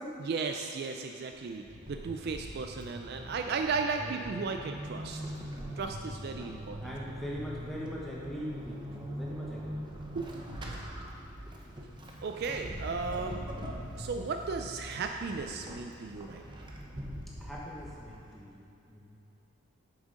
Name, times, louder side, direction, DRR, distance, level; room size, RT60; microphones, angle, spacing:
voice 1, 0.3-5.2 5.8-6.8 10.1-11.0 12.2-13.5 14.0-16.4, right 4 dB, 50° right, 4 dB, 0.3 m, -35 dB
Vehicle / Accelerating revving vroom / Squeak, 1.3-18.5, equal, 20° right, 0.7 m, -42 dB
voice 2, 5.5-5.9 6.3-10.1 17.4-19.2, equal, ahead, -6 dB, 1.2 m, -42 dB
7.4 x 6.3 x 5.0 m, 2.8 s
head